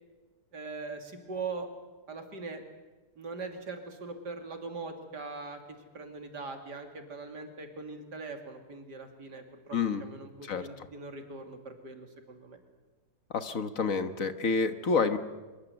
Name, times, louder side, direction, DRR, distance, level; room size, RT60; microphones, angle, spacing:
voice 1, 0.5-1.7 2.1-2.6 3.2-5.6 5.9-12.6, right 4 dB, 85° right, 5 dB, 3.3 m, -41 dB
voice 2, 9.7-10.0 10.4-10.9 13.3-15.2, left 5 dB, 55° left, 10 dB, 1.6 m, -29 dB
24.5 x 23.5 x 8.1 m, 1.3 s
omnidirectional pair, 1.8 m